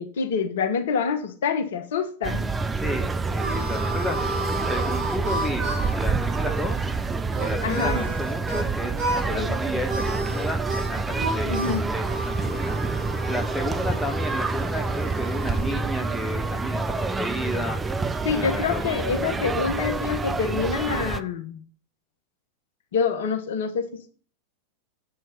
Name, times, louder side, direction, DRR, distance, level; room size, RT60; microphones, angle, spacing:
voice 1, 0.0-2.4 7.6-8.0 9.4-9.6 11.4-11.8 18.2-21.6 22.9-24.1, left 6 dB, 60° left, 7 dB, 1.1 m, -26 dB
sound 1, 2.2-21.2, right 3 dB, 15° right, 0.5 m, -27 dB
voice 2, 2.8-6.8 7.4-11.6 11.8-12.8 13.3-17.8 18.2-19.1 19.4-19.6, left 1 dB, 5° left, 2 dB, 1.2 m, -33 dB
Harmonica, 2.9-8.7 9.0-9.5 9.8-15.9, right 1 dB, 35° right, 2.0 m, -32 dB
7.8 x 4.5 x 5.7 m, 0.41 s
figure-of-eight pair, 90°, 0 cm